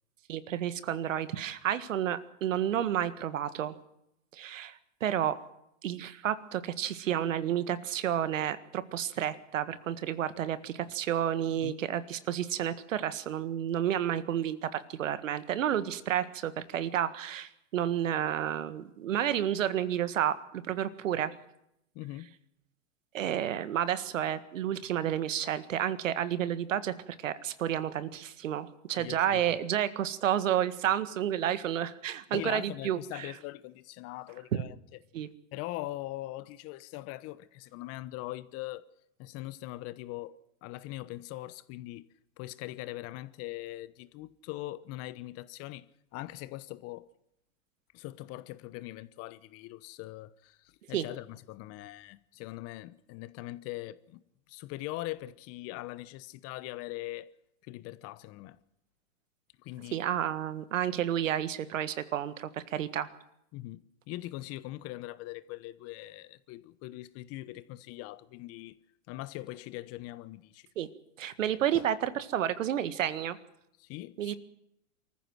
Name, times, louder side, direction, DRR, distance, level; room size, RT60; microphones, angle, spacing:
voice 1, 0.3-3.7 4.3-5.4 5.8-21.3 23.1-26.9 27.2-33.3 34.5-34.6 35.1-35.3 50.9-51.1 59.9-63.1 70.8-70.9 71.2-73.4 74.2-74.4, right 10 dB, 75° right, 1.8 m, -31 dB
voice 2, 11.5-11.8 21.9-22.4 29.0-29.6 32.3-34.8 35.5-38.8 39.2-42.1 42.4-47.1 47.9-54.2 54.5-57.3 57.6-58.6 59.6-60.0 63.5-68.8 69.1-70.7 71.7-71.9 73.8-74.3, left 17 dB, 40° left, 1.1 m, -41 dB
24.0 x 14.5 x 7.8 m
hypercardioid pair, 115°, 39 cm